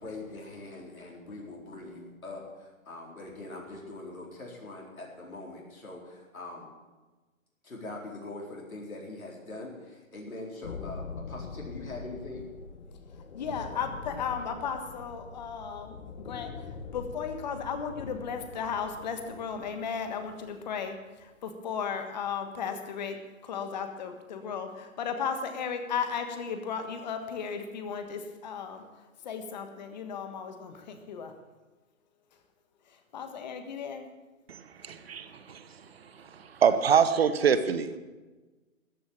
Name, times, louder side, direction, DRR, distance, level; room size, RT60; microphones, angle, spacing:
voice 1, 0.0-6.7 7.6-12.4, left 2 dB, 80° left, -2 dB, 4.4 m, -42 dB
sound 1, 10.6-20.9, left 4 dB, 50° left, 1.5 m, -44 dB
voice 2, 13.3-31.3 32.9-34.1, left 6 dB, 30° left, 7 dB, 1.5 m, -35 dB
voice 3, 34.5-35.6 36.6-38.0, right 7 dB, 45° right, 12 dB, 1.1 m, -25 dB
14.0 x 10.0 x 7.4 m, 1.2 s
hypercardioid pair, 150°, 41 cm